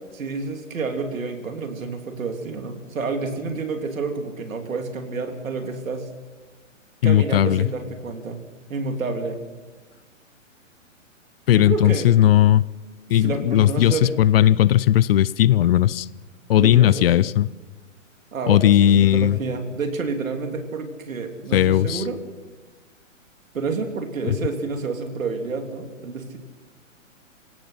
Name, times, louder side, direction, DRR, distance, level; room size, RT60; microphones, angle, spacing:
voice 1, 0.1-6.1 7.0-8.4 8.7-9.4 11.5-12.1 13.1-14.1 16.6-17.1 18.3-22.2 23.5-26.4, right 4 dB, 85° right, 5 dB, 3.3 m, -29 dB
voice 2, 7.0-7.7 11.5-12.6 13.1-16.1 16.5-17.5 18.5-19.4 21.5-22.0 24.2-24.4, left 12 dB, 50° left, 21 dB, 0.6 m, -17 dB
26.5 x 17.0 x 5.8 m, 1.3 s
hypercardioid pair, 145°, 39 cm